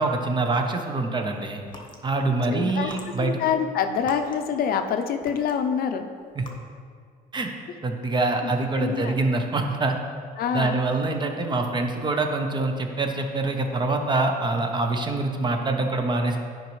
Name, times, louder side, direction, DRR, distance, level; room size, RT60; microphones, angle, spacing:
voice 1, 0.0-1.6 2.0-3.4 6.3-6.4 7.3-7.5 7.8-10.0 10.5-16.4, right 3 dB, 25° right, 4 dB, 0.7 m, -25 dB
sound 1, 1.6-2.0 2.7-4.9 5.2-5.8 6.3-6.5, left 2 dB, 30° left, 1.0 m, -44 dB
voice 2, 2.5-2.9 3.2-6.1 8.4-9.2 10.4-10.8, left 7 dB, 60° left, 7 dB, 0.6 m, -26 dB
10.5 x 5.2 x 3.1 m, 2.1 s
cardioid pair, 110°, 17 cm